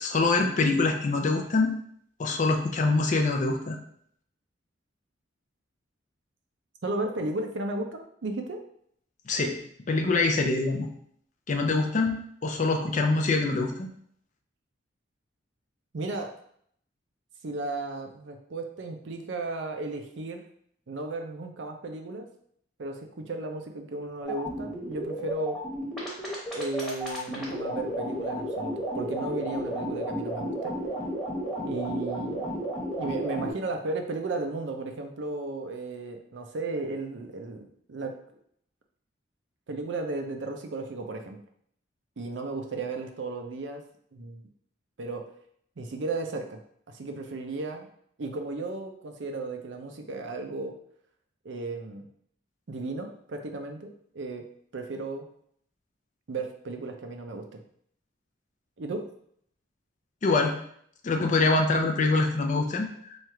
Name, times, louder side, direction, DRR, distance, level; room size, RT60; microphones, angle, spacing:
voice 1, 0.0-1.8 2.2-3.8 9.3-9.6 9.9-10.9 11.5-13.9 60.2-60.6 61.0-63.2, left 3 dB, 40° left, 4 dB, 0.4 m, -25 dB
voice 2, 6.8-8.6 15.9-16.3 17.4-20.4 20.9-22.3 22.8-25.6 26.5-30.8 31.6-32.6 33.0-38.1 39.7-41.4 42.2-43.8 44.1-44.4 45.0-45.2 45.8-46.6 46.9-47.9 48.2-50.8 51.4-52.1 52.7-53.9 54.1-54.4 54.7-55.3 56.3-57.6 58.8-59.1, right 3 dB, 65° right, 4 dB, 0.5 m, -34 dB
sound 1, 24.2-33.5, equal, ahead, 1.0 m, -33 dB
3.1 x 2.4 x 4.3 m, 0.66 s
head